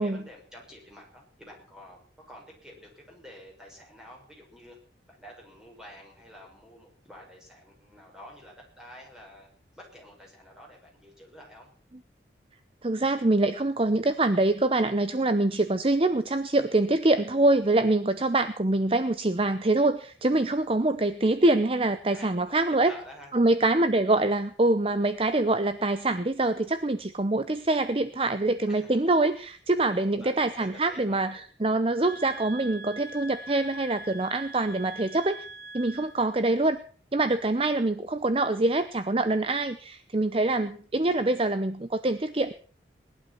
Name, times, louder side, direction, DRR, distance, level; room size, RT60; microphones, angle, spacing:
voice 1, 0.0-4.8 5.1-9.5 9.7-11.7 22.1-23.3 28.7-29.0 29.3-29.4 29.7-31.4, equal, 5° right, -1 dB, 6.6 m, -49 dB
voice 2, 12.8-22.9 23.3-35.4 35.7-36.8 37.1-42.5, right 2 dB, 30° right, 11 dB, 0.7 m, -25 dB
sound 1, 32.0-36.3, right 1 dB, 60° right, 1.4 m, -43 dB
20.0 x 11.5 x 5.9 m, 0.43 s
head